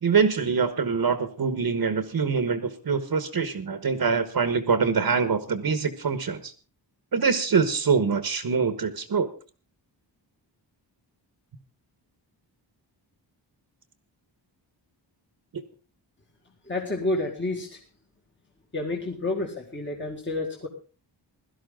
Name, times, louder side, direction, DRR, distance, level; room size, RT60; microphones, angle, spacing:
voice 1, 0.0-6.5 7.1-9.3 15.5-15.6, right 5 dB, 50° right, 10 dB, 1.4 m, -24 dB
voice 2, 16.7-17.8 18.7-20.7, left 2 dB, 25° left, 0 dB, 1.9 m, -29 dB
17.0 x 12.5 x 3.8 m, 0.36 s
wide cardioid pair, 175°, 45 cm